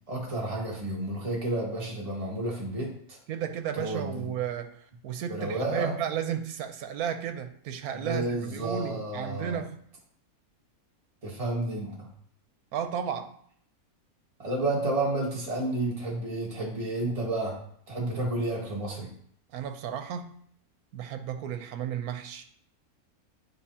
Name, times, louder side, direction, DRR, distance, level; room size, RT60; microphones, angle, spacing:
voice 1, 0.1-3.2 3.7-4.3 5.3-5.9 7.9-9.6 11.2-12.1 14.4-17.6 17.9-19.1, right 2 dB, 25° right, -3 dB, 1.5 m, -31 dB
voice 2, 3.3-9.8 12.7-13.3 19.5-20.4 20.9-22.5, right 8 dB, 85° right, 8 dB, 1.1 m, -33 dB
9.5 x 3.8 x 2.8 m, 0.62 s
omnidirectional pair, 1.5 m